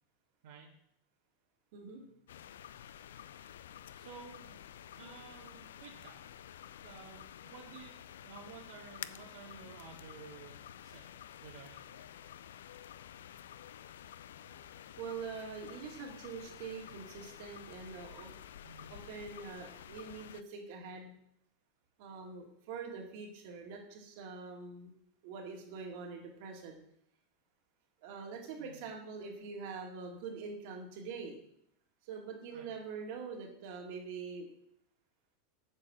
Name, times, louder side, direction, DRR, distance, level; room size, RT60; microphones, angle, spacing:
voice 1, 1.7-2.0 15.0-18.4 18.9-21.1 22.0-24.9 25.2-26.7 28.0-31.4 32.0-34.5, right 5 dB, 65° right, 1 dB, 2.3 m, -44 dB
sound 1, 2.3-20.4, left 10 dB, 85° left, 0.3 m, -51 dB
voice 2, 3.9-6.2 6.8-7.9 8.2-11.1 11.4-11.9 18.6-18.9 28.6-28.8 32.5-32.7, right 5 dB, 80° right, -4 dB, 1.6 m, -53 dB
7.5 x 4.9 x 7.2 m, 0.73 s
supercardioid pair, 125°, 0 cm